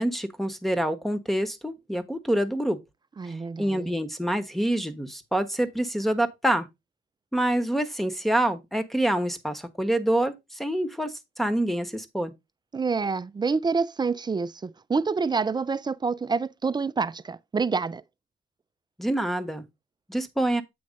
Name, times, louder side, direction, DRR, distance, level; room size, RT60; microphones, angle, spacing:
voice 1, 0.0-2.8 3.3-6.6 7.3-12.3 19.0-19.6 20.1-20.6, right 1 dB, ahead, 1.2 m, -26 dB
voice 2, 3.2-4.0 12.7-18.0, right 4 dB, 20° right, 0.4 m, -27 dB
8.6 x 3.2 x 5.2 m
cardioid pair, 90°, 20 cm